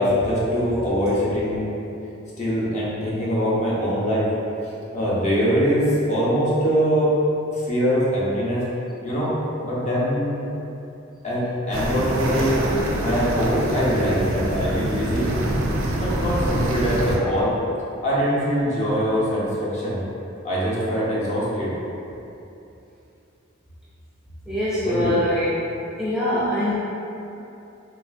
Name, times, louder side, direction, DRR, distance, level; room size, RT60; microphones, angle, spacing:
voice 1, 0.0-1.7 2.4-4.3 4.9-7.1 7.5-8.6 9.0-9.3 9.6-10.5 11.2-12.6 13.0-15.3 15.9-17.5 18.0-20.0 20.4-21.7 24.8-25.1, equal, 35° left, -8 dB, 0.6 m, -23 dB
sound 1, 11.7-17.2, right 1 dB, 75° right, 0.4 m, -25 dB
voice 2, 24.5-25.5 26.0-26.7, left 1 dB, 5° right, -11 dB, 0.3 m, -23 dB
3.1 x 2.4 x 2.4 m, 2.8 s
head